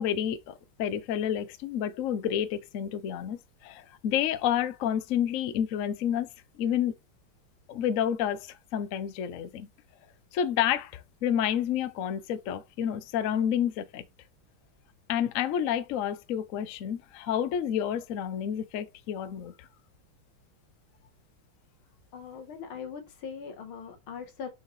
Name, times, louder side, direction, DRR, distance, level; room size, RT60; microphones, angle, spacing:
voice 1, 0.0-6.3 6.6-6.9 7.7-9.7 10.3-14.0 15.1-19.7, left 9 dB, 70° left, 0.7 m, -29 dB
voice 2, 22.1-24.5, left 6 dB, 85° left, 2.1 m, -40 dB
6.4 x 4.6 x 3.2 m
omnidirectional pair, 2.2 m